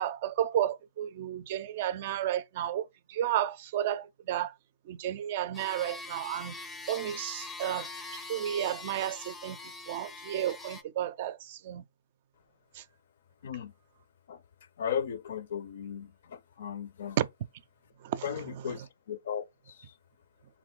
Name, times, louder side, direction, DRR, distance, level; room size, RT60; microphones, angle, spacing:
voice 1, 0.0-4.5 4.9-6.6 6.9-11.8 12.7-12.8 17.2-17.3 18.0-18.7, right 11 dB, 50° right, 0.4 m, -32 dB
sound 1, 5.5-10.8, left 3 dB, 10° left, 0.5 m, -43 dB
voice 2, 13.4-13.7 14.3-14.4 14.8-17.2 18.2-19.9, left 8 dB, 65° left, 0.5 m, -36 dB
3.7 x 3.0 x 3.7 m
hypercardioid pair, 140°, 0 cm